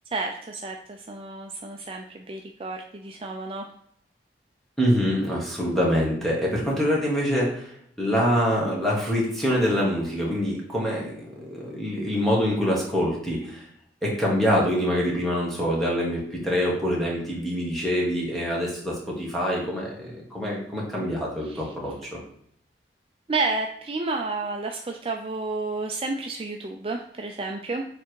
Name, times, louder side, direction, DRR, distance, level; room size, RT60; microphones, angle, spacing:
voice 1, 0.1-3.6 21.4-21.7 23.3-27.8, right 3 dB, 30° right, 3 dB, 0.4 m, -31 dB
voice 2, 4.8-7.6 8.0-13.6 14.0-22.2, equal, ahead, -4 dB, 1.7 m, -25 dB
7.2 x 3.4 x 4.7 m, 0.69 s
head